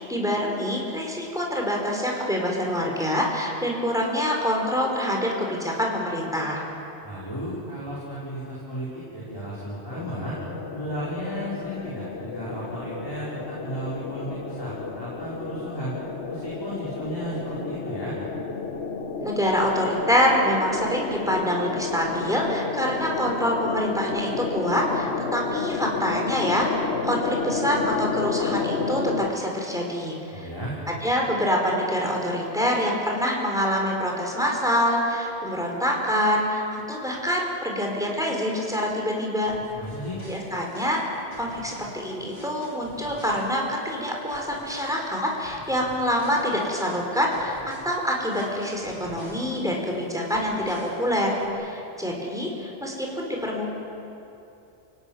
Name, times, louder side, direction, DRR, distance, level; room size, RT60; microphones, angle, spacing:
voice 1, 0.1-6.6 19.2-26.7 27.0-30.5 30.9-39.6 40.3-41.0 41.4-53.7, equal, 5° right, -1 dB, 4.8 m, -26 dB
voice 2, 7.0-10.4 10.7-15.9 16.3-18.2 30.3-30.8 39.7-40.2, right 1 dB, 25° left, -8 dB, 5.4 m, -34 dB
sound 1, 9.9-29.3, left 4 dB, 85° left, 1.6 m, -31 dB
sound 2, 39.5-43.9 44.3-49.9 50.3-51.5, equal, 40° left, 5.3 m, -46 dB
30.0 x 18.0 x 9.5 m, 2.8 s
omnidirectional pair, 1.1 m